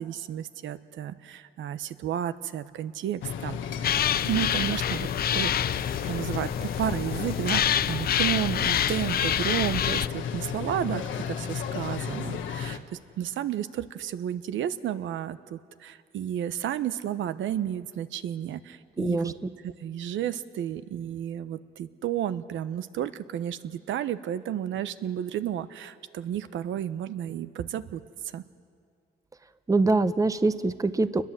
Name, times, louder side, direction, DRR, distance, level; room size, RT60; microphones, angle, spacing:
voice 1, 0.0-3.6 4.2-5.8 6.0-19.3 19.6-28.0 28.3-28.4, right 10 dB, 75° right, 13 dB, 1.0 m, -32 dB
sound 1, 3.2-12.8, left 7 dB, 75° left, 1.4 m, -33 dB
sound 2, 3.8-10.1, left 10 dB, 50° left, 0.5 m, -27 dB
voice 2, 19.0-19.3 29.7-31.3, right 3 dB, 15° right, 12 dB, 0.9 m, -24 dB
29.5 x 21.0 x 7.6 m, 2.3 s
cardioid pair, 90°, 20 cm